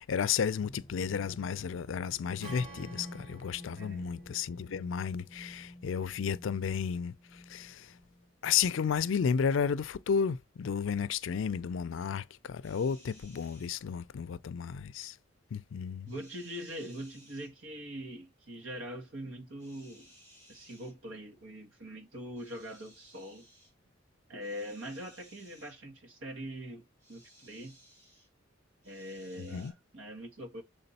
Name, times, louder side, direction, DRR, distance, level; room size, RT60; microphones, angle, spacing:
voice 1, 0.0-7.9 8.4-15.2 15.5-16.1 29.5-29.7, left 7 dB, 75° left, 0.4 m, -32 dB
sound 1, 0.6-8.3, left 1 dB, 20° left, 0.7 m, -50 dB
Strum, 2.4-6.7, right 1 dB, 50° right, 4.8 m, -52 dB
voice 2, 3.7-4.0 16.1-20.1 20.5-23.5 24.3-27.8 28.8-30.6, equal, 85° right, 1.4 m, -43 dB
sound 2, 12.6-13.8 16.1-17.5 19.6-20.9 22.4-23.7 24.4-25.8 27.0-28.3 28.8-29.7, equal, 35° right, 4.2 m, -59 dB
6.9 x 3.5 x 4.1 m
head